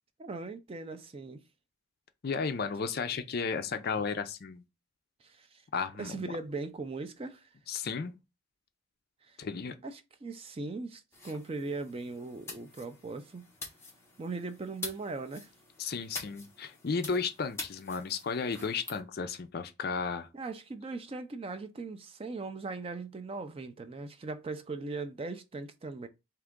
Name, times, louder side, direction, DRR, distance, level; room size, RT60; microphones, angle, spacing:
voice 1, 0.2-1.4 5.2-5.6 6.0-7.5 9.2-9.4 9.8-13.5 14.2-15.5 20.3-26.1, right 3 dB, 25° right, 0.3 m, -39 dB
voice 2, 2.2-4.6 5.7-6.3 7.7-8.1 9.4-9.7 15.8-20.3, left 5 dB, 45° left, 0.4 m, -34 dB
sound 1, 11.1-19.0, left 3 dB, 10° left, 0.8 m, -46 dB
3.6 x 2.9 x 3.6 m
head